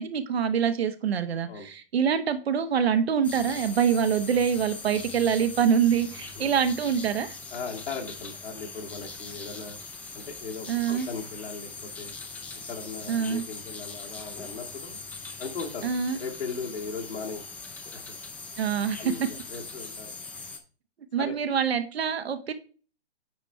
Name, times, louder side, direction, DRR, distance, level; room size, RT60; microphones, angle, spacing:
voice 1, 0.0-7.4 10.7-11.1 13.1-13.4 15.8-16.2 18.6-19.1 21.1-22.5, right 7 dB, 65° right, 0.9 m, -25 dB
sound 1, 3.2-20.6, left 3 dB, 5° left, 0.5 m, -41 dB
voice 2, 7.5-9.8 10.1-12.1 12.7-15.0 15.4-17.4 17.9-18.2 19.0-20.2 21.2-21.4, left 5 dB, 75° left, 2.1 m, -38 dB
9.0 x 3.4 x 4.3 m
figure-of-eight pair, 125°, 33 cm